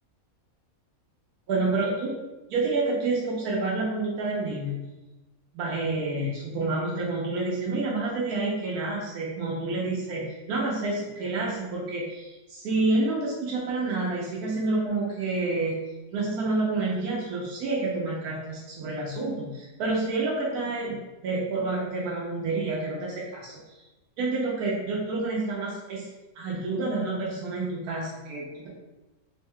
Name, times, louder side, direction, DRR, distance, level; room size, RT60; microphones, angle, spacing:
voice 1, 1.5-2.2 2.5-4.8 5.5-15.8 16.1-23.8 24.2-26.1 26.3-28.7, right 3 dB, 85° right, -5 dB, 1.2 m, -29 dB
3.4 x 2.1 x 3.5 m, 1.1 s
omnidirectional pair, 1.6 m